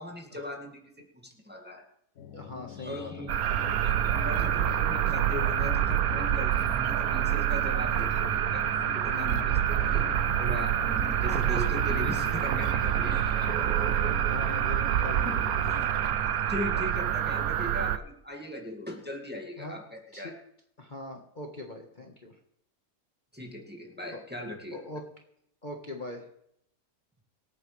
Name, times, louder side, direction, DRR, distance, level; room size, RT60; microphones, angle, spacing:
voice 1, 0.0-1.8 2.8-3.4 3.8-10.1 10.4-13.5 15.2-15.3 16.5-20.4 23.3-24.8, left 1 dB, 5° right, 1 dB, 2.0 m, -39 dB
sound 1, 2.2-16.2, left 8 dB, 70° left, 1.2 m, -45 dB
voice 2, 2.3-3.1 9.1-9.5 13.5-13.7 14.3-15.5 15.9-16.2 19.6-19.8 20.1-20.3 20.8-22.4 24.1-24.2 24.7-25.0 25.6-26.3, left 2 dB, 35° left, 1 dB, 1.5 m, -41 dB
sound 2, 3.3-18.0, right 10 dB, 85° right, 1.2 m, -27 dB
25.5 x 9.0 x 3.3 m, 0.73 s
omnidirectional pair, 1.5 m